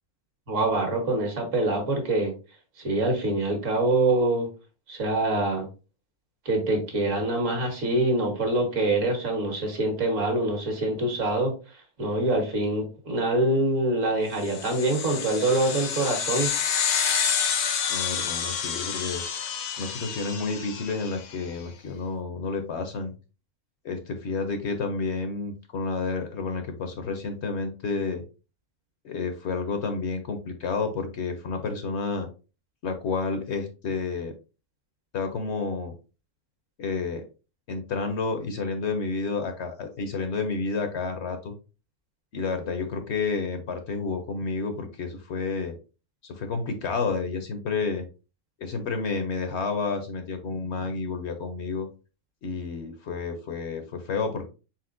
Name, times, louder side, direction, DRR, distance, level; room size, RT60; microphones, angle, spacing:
voice 1, 0.5-2.3 2.8-4.5 4.9-5.7 6.4-11.5 12.0-16.5, right 2 dB, 65° right, 3 dB, 1.6 m, -25 dB
sound 1, 14.4-21.3, left 7 dB, 80° left, 1.1 m, -29 dB
voice 2, 17.9-19.2 19.8-23.1 23.8-28.2 29.0-32.3 32.8-34.3 35.1-35.9 36.8-37.2 37.7-41.5 42.3-45.8 46.3-48.0 48.6-51.9 52.4-54.5, left 4 dB, 60° left, 7 dB, 0.8 m, -30 dB
4.2 x 3.9 x 2.5 m, 0.32 s
omnidirectional pair, 1.5 m